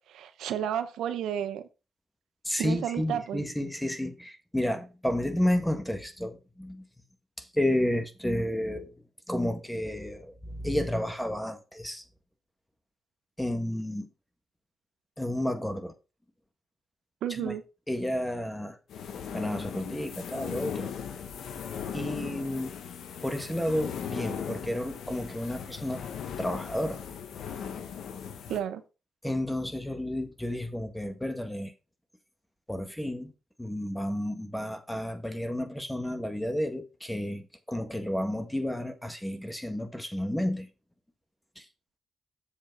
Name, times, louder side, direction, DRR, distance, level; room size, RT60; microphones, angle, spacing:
voice 1, 0.1-1.6 2.6-3.4 17.2-17.6 28.5-28.8, right 10 dB, 85° right, 0.9 m, -32 dB
voice 2, 2.4-6.8 7.4-8.9 9.3-12.0 13.4-14.1 15.2-15.9 17.3-17.5 17.9-18.8 19.3-20.9 21.9-22.7 23.2-26.0 26.4-27.0 29.2-31.7 32.7-33.3 33.6-40.7 41.5-41.6, left 1 dB, 5° left, 1.7 m, -31 dB
sound 1, 18.9-28.6, left 7 dB, 80° left, 1.1 m, -38 dB
7.3 x 7.3 x 3.9 m
cardioid pair, 80°, 0 cm